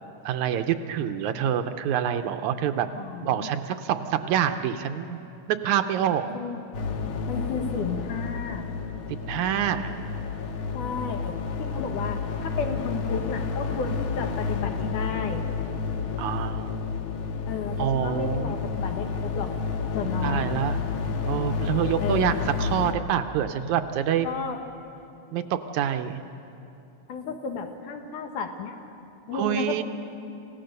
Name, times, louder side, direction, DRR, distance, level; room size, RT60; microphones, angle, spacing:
voice 1, 0.2-2.9 3.2-5.2 5.5-6.3 9.2-9.9 16.2-16.8 17.8-18.6 20.2-20.8 21.3-24.3 25.3-26.2 29.3-29.8, right 9 dB, 80° right, 8 dB, 2.0 m, -26 dB
voice 2, 3.0-3.5 6.3-6.6 7.3-8.7 10.7-15.5 17.5-19.6 19.9-20.5 22.0-22.4 24.2-24.6 27.1-28.8 29.3-29.8, left 5 dB, 80° left, 5 dB, 2.9 m, -32 dB
sound 1, 6.7-22.9, left 5 dB, 60° left, 2.1 m, -30 dB
27.5 x 16.5 x 6.7 m, 2.7 s
omnidirectional pair, 3.6 m